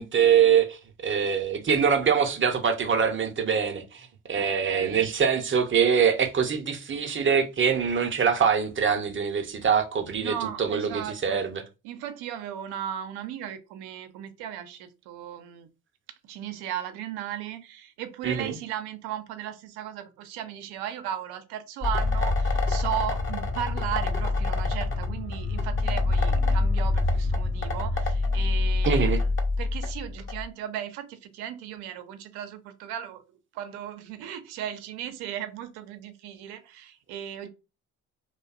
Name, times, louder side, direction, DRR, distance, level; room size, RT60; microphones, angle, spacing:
voice 1, 0.0-11.6 18.2-18.5 28.9-29.2, right 7 dB, 30° right, 0.6 m, -24 dB
voice 2, 4.4-5.1 10.2-11.4 11.8-15.7 16.3-29.3 29.6-33.2 33.5-37.5, right 10 dB, 70° right, 0.6 m, -36 dB
sound 1, 21.8-30.5, left 3 dB, 30° left, 0.6 m, -26 dB
2.5 x 2.1 x 2.4 m
hypercardioid pair, 50°, 41 cm